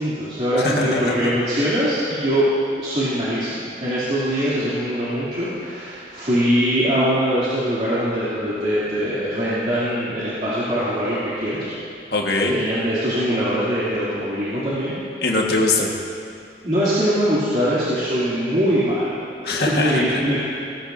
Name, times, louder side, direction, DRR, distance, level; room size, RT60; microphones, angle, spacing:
voice 1, 0.0-2.5 2.8-11.7 12.5-14.9 16.6-19.2 19.5-20.3, equal, 40° right, -13 dB, 2.8 m, -22 dB
voice 2, 0.6-1.3 12.1-12.5 15.2-15.9 19.4-20.2, left 2 dB, 70° left, -1 dB, 1.5 m, -22 dB
18.0 x 14.0 x 2.7 m, 2.5 s
head